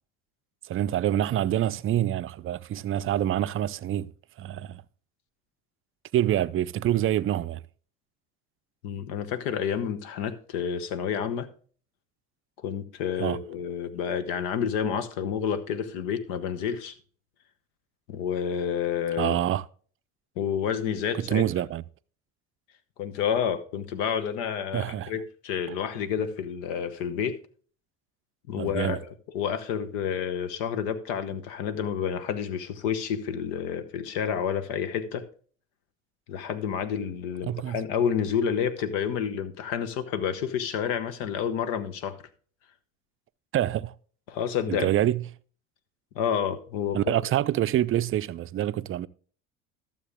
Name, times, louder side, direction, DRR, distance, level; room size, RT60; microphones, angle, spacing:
voice 1, 0.7-4.1 4.4-4.8 6.1-7.6 13.2-13.4 19.2-19.6 21.2-21.8 24.7-25.1 28.6-29.0 37.5-37.8 43.5-43.9 44.7-45.2 46.9-49.1, right 12 dB, 35° right, 0.5 m, -26 dB
voice 2, 8.8-11.5 12.6-17.0 18.1-19.4 20.4-21.4 23.0-27.4 28.5-35.2 36.3-42.2 44.3-44.9 46.1-47.1, left 8 dB, 70° left, 1.1 m, -29 dB
12.5 x 7.1 x 3.6 m
hypercardioid pair, 70°, 38 cm